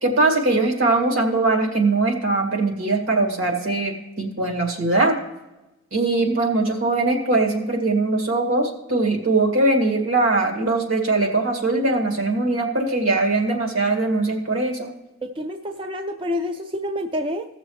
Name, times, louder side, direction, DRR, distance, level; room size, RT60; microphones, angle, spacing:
voice 1, 0.0-5.2 5.9-14.9, right 2 dB, 75° right, 1 dB, 2.1 m, -21 dB
voice 2, 15.2-17.5, left 1 dB, 25° right, 6 dB, 0.4 m, -28 dB
16.5 x 6.9 x 3.1 m, 1.0 s
head